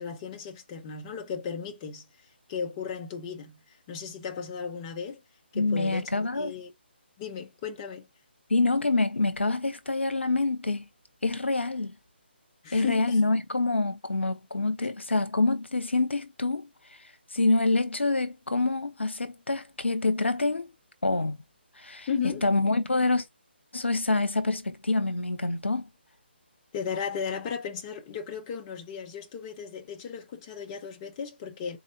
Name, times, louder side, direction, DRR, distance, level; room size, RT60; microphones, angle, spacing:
voice 1, 0.0-2.0 2.5-3.6 3.9-5.2 5.5-6.7 7.2-8.1 12.6-13.2 14.8-14.9 22.1-22.5 26.7-31.8, left 6 dB, 25° left, 0.7 m, -35 dB
voice 2, 5.5-6.5 8.5-10.8 11.2-11.9 12.7-16.7 17.3-20.7 21.0-21.4 21.8-22.1 22.4-23.2 23.7-25.9, left 3 dB, 85° left, 0.9 m, -26 dB
4.2 x 2.5 x 2.7 m
figure-of-eight pair, 150°, 6 cm